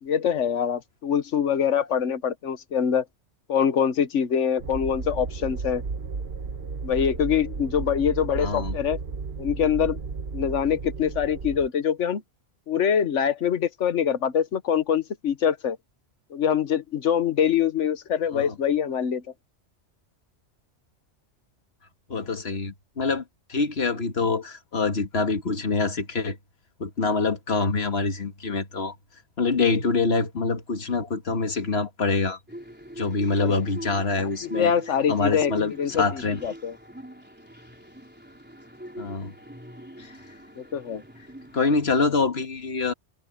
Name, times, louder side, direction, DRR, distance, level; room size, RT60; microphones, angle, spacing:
voice 1, 0.0-3.0 3.5-5.8 6.8-9.0 9.4-10.0 10.3-12.2 12.7-15.8 16.3-19.2 33.4-33.5 34.5-36.7 40.6-41.0, left 8 dB, 85° left, 1.3 m, -24 dB
sound 1, 4.6-11.7, right 4 dB, 60° right, 1.4 m, -34 dB
voice 2, 8.4-8.8 18.3-18.5 22.1-23.2 23.5-26.4 26.8-29.0 29.4-32.4 33.0-34.7 35.1-36.4 39.0-39.3 40.0-40.1 41.5-42.9, left 4 dB, 60° left, 1.9 m, -25 dB
sound 2, 32.5-41.7, equal, 10° right, 4.0 m, -43 dB
omnidirectional pair, 1.2 m